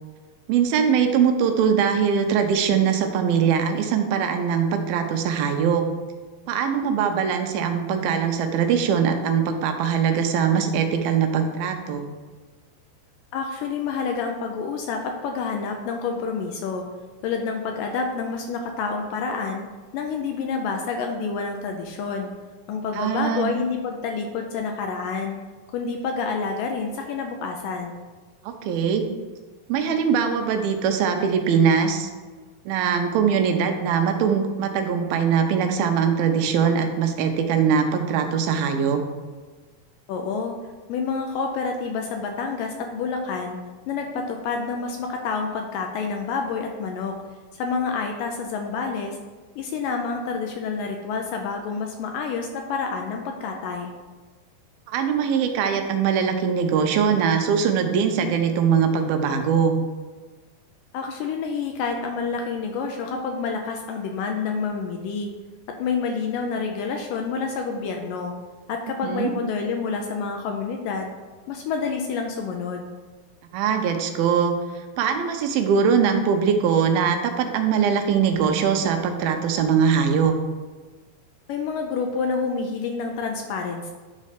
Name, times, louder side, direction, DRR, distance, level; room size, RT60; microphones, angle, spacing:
voice 1, 0.5-5.8 6.5-12.1 22.9-23.5 28.4-29.0 29.7-32.1 32.7-39.0 54.9-59.8 69.0-69.3 73.5-80.3, right 7 dB, 85° right, 5 dB, 2.5 m, -22 dB
voice 2, 13.3-16.9 17.2-19.6 19.9-22.3 22.7-25.4 25.7-28.0 40.1-40.6 40.9-43.6 43.9-47.1 47.6-49.2 49.6-53.9 60.9-65.3 65.8-68.3 68.7-71.1 71.5-72.9 81.5-83.9, left 5 dB, 80° left, 3 dB, 2.1 m, -28 dB
9.8 x 4.2 x 5.0 m, 1.3 s
omnidirectional pair, 4.3 m